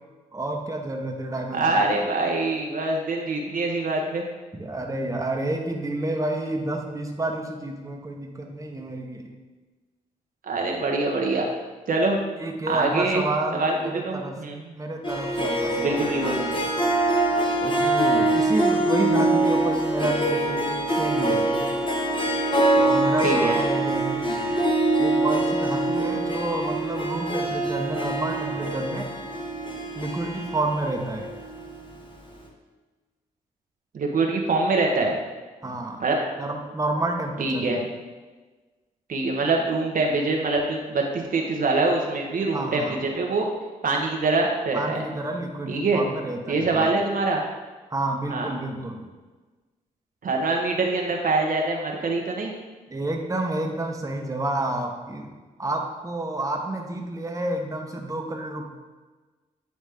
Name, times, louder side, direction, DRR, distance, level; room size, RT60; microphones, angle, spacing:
voice 1, 0.3-1.9 4.5-9.3 12.4-14.4 14.7-16.7 17.6-21.8 22.7-24.5 25.0-29.1 29.9-31.3 35.6-36.0 36.4-37.9 42.5-43.0 44.7-46.9 47.9-49.0 52.9-55.3 55.6-58.7, right 2 dB, 20° right, 1 dB, 1.0 m, -30 dB
voice 2, 1.5-4.2 10.4-11.5 11.9-12.2 12.7-13.2 13.5-13.8 14.0-14.6 15.8-16.4 23.2-23.5 33.9-35.2 36.0-36.2 37.4-37.8 39.1-43.5 43.8-45.0 45.7-46.0 46.5-47.4 48.3-48.5 50.2-52.5, right 3 dB, 55° right, 0 dB, 0.9 m, -24 dB
Harp, 15.0-31.8, right 2 dB, 30° left, 1.2 m, -24 dB
9.1 x 3.1 x 3.5 m, 1.3 s
supercardioid pair, 45°, 17 cm